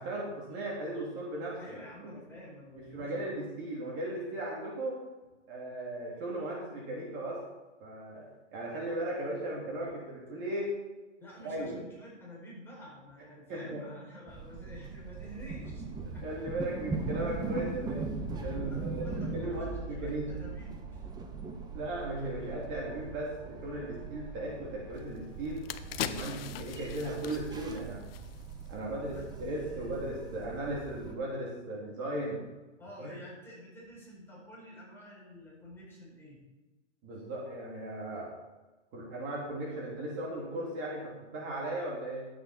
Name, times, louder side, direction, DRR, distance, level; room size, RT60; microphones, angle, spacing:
voice 1, 0.0-1.8 2.9-5.0 5.5-7.4 7.8-8.2 8.5-10.7 11.4-11.8 13.5-13.8 16.2-18.1 18.4-20.3 21.7-28.0 28.7-32.4 33.0-33.2 37.0-38.3 38.9-42.3, right 1 dB, 35° right, -3 dB, 3.0 m, -37 dB
voice 2, 1.6-3.4 9.2-9.3 11.2-16.4 18.7-21.1 22.3-22.5 28.9-30.0 32.8-36.4, equal, 5° left, -5 dB, 4.2 m, -49 dB
sound 1, 14.3-31.1, right 3 dB, 10° right, 1.0 m, -40 dB
sound 2, 25.0-25.1 25.5-28.7 29.0-29.2, left 11 dB, 50° left, 0.7 m, -40 dB
12.0 x 8.2 x 4.3 m, 1.2 s
hypercardioid pair, 125°, 37 cm